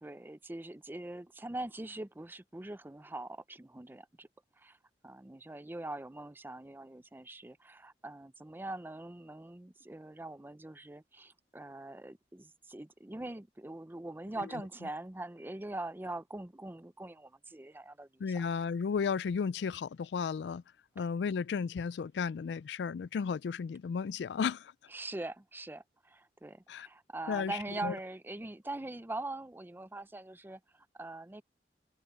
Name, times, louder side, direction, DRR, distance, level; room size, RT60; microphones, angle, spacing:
voice 1, 0.0-4.3 4.6-4.8 5.0-18.4 24.9-31.4, right 2 dB, 10° right, 0.5 m, -43 dB
voice 2, 18.2-20.6 21.0-24.7 26.7-26.9 27.3-27.9, left 6 dB, 70° left, 0.3 m, -34 dB
head